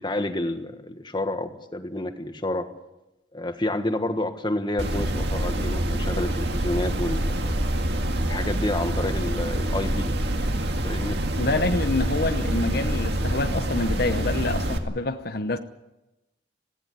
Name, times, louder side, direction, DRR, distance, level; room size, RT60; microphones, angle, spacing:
voice 1, 0.0-2.7 3.3-7.5 8.3-10.2 10.8-11.2, left 1 dB, 25° left, 1.5 m, -29 dB
sound 1, 4.8-14.8, right 1 dB, 60° right, 2.1 m, -26 dB
voice 2, 11.4-15.6, left 2 dB, 55° left, 0.9 m, -27 dB
19.0 x 16.5 x 9.4 m
head